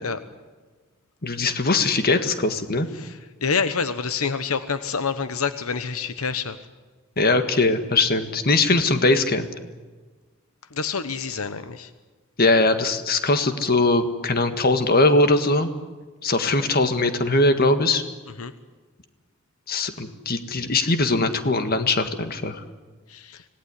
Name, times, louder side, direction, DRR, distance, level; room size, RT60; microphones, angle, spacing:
voice 1, 1.2-2.9 7.2-9.5 12.4-15.7 16.2-18.0 19.7-22.6, left 2 dB, 45° left, 8 dB, 1.7 m, -21 dB
voice 2, 2.9-6.6 10.7-11.9 18.4-18.5 23.1-23.4, left 5 dB, 80° left, 11 dB, 1.1 m, -27 dB
26.0 x 18.5 x 9.8 m, 1.3 s
head